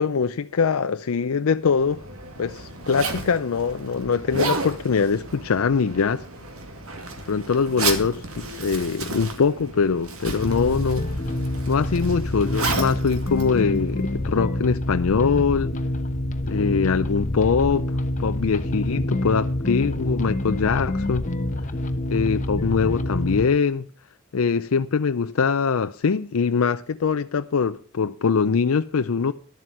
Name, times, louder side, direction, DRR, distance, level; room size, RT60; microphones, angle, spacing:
voice 1, 0.0-2.0 2.4-6.2 7.3-11.0 11.7-15.7 16.4-21.2 22.1-23.9 24.3-29.3, left 5 dB, 85° left, 0.5 m, -23 dB
Zipper (clothing), 1.6-14.3, right 3 dB, 90° right, 2.3 m, -33 dB
sound 1, 10.4-23.5, left 1 dB, 35° left, 1.0 m, -27 dB
12.0 x 7.7 x 6.0 m
head